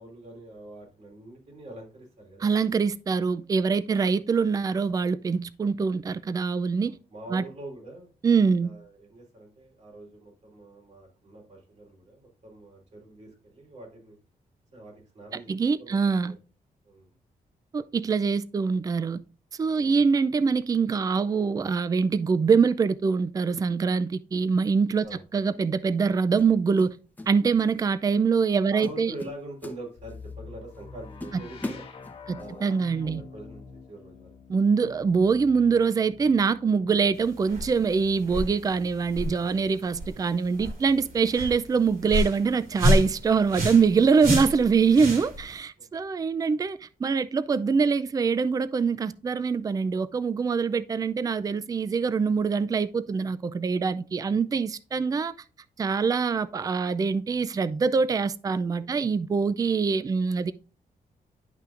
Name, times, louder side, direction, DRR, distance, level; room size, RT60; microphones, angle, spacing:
voice 1, 0.0-2.5 3.7-3.9 6.8-8.1 8.6-14.2 14.7-15.5 15.8-16.0 16.3-16.4 16.8-17.1 19.8-20.0 25.0-25.2 27.6-27.8 28.7-31.9 32.3-32.7 33.0-33.6 33.9-34.3 45.8-45.9 58.6-59.0, right 1 dB, 50° right, 3.7 m, -44 dB
voice 2, 2.4-6.9 7.3-7.4 8.2-8.7 15.5-16.3 17.7-19.2 19.6-25.1 25.3-26.9 27.3-29.1 32.3-33.2 34.5-55.3 55.8-60.5, right 5 dB, 25° right, 0.4 m, -24 dB
sound 1, 25.0-25.3 26.4-27.3 27.6-27.9 28.4-28.5 28.8-30.3 30.7-30.8 31.2-32.5, left 2 dB, 10° left, 1.0 m, -39 dB
sound 2, 30.0-39.8 40.8-41.8, left 5 dB, 40° left, 1.3 m, -48 dB
sound 3, 37.1-45.6, equal, 80° right, 3.6 m, -30 dB
10.5 x 5.7 x 2.5 m
wide cardioid pair, 150°, 15 cm